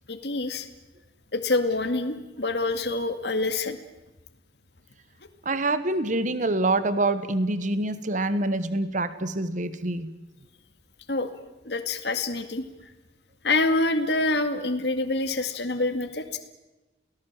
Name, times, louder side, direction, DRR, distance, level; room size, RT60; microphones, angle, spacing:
voice 1, 0.1-0.7 1.3-3.8 11.1-11.3 11.6-12.6 13.4-16.4, left 2 dB, 65° left, 7 dB, 2.2 m, -26 dB
voice 2, 5.4-10.1, right 2 dB, 45° right, 12 dB, 1.3 m, -26 dB
29.0 x 18.5 x 7.6 m, 1.1 s
head